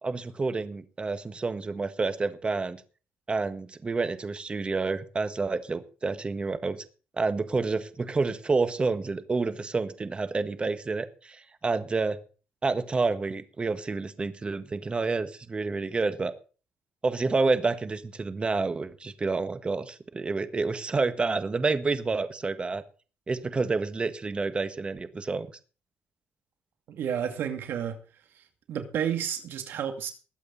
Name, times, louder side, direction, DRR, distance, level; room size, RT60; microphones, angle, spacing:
voice 1, 0.0-2.8 3.3-6.8 7.2-12.2 12.6-16.3 17.0-22.8 23.3-25.5, right 3 dB, 30° right, 11 dB, 1.6 m, -29 dB
voice 2, 26.9-28.0 28.7-30.1, right 9 dB, 70° right, 6 dB, 2.4 m, -31 dB
20.5 x 8.2 x 4.1 m, 0.36 s
cardioid pair, 90°, 4 cm